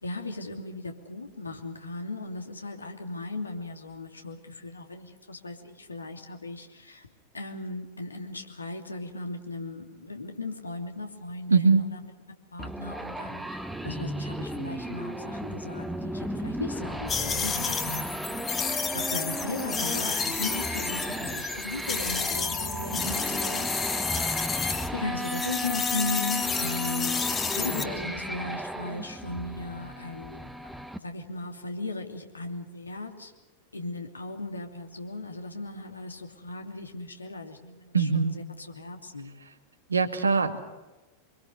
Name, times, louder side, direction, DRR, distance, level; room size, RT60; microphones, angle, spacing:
voice 1, 0.0-7.1 7.3-12.0 12.5-13.6 13.8-23.8 24.9-27.2 27.5-30.5 31.0-33.3 33.7-38.4 38.7-39.3, left 2 dB, 80° left, 4 dB, 2.9 m, -37 dB
voice 2, 11.5-11.8 37.9-38.3 39.9-40.6, right 4 dB, 75° right, 6 dB, 2.1 m, -22 dB
sound 1, 12.6-31.0, equal, 5° right, 1.3 m, -34 dB
sound 2, 17.1-24.9 25.2-27.8, left 6 dB, 20° left, 2.0 m, -31 dB
26.0 x 23.5 x 6.6 m, 1.1 s
figure-of-eight pair, 90°, 0 cm